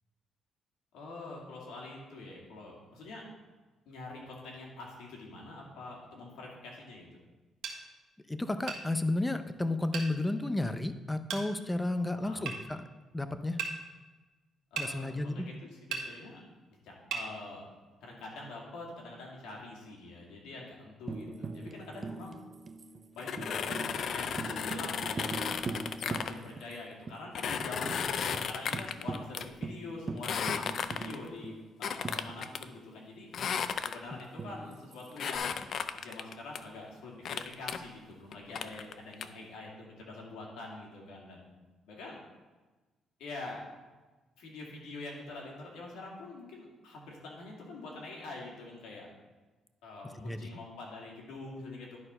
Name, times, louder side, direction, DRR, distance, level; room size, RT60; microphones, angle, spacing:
voice 1, 0.9-3.3 3.9-7.1 12.1-12.5 14.7-15.5 15.8-16.4 16.8-17.7 18.0-22.4 23.1-33.3 33.8-41.4 41.9-42.2 43.2-43.6 44.4-49.1 49.8-52.0, left 2 dB, 90° left, -2 dB, 2.3 m, -45 dB
sound 1, 7.6-7.8 8.7-8.8 9.9-10.1 11.3-11.5 12.5-12.6 13.6-13.8 14.8-14.9 15.9-16.1 17.1-17.3, right 6 dB, 75° right, 1.3 m, -35 dB
voice 2, 8.3-12.8 13.1-13.6 14.8-15.5 34.1-34.2 50.2-50.5, left 2 dB, 10° left, 10 dB, 0.6 m, -32 dB
Tambourine, 21.1-26.8 27.1-27.2 27.5-28.0 28.3-28.4 28.7-32.9 34.4-35.4, right 3 dB, 35° right, 0.6 m, -41 dB
sound 2, 23.2-26.3 27.3-29.5 30.2-31.3 31.8-32.6 33.3-34.2 35.2-36.6 37.2-37.8 38.3-39.3, left 7 dB, 60° left, 0.4 m, -34 dB
11.0 x 4.4 x 5.4 m, 1.2 s
cardioid pair, 90°, 0 cm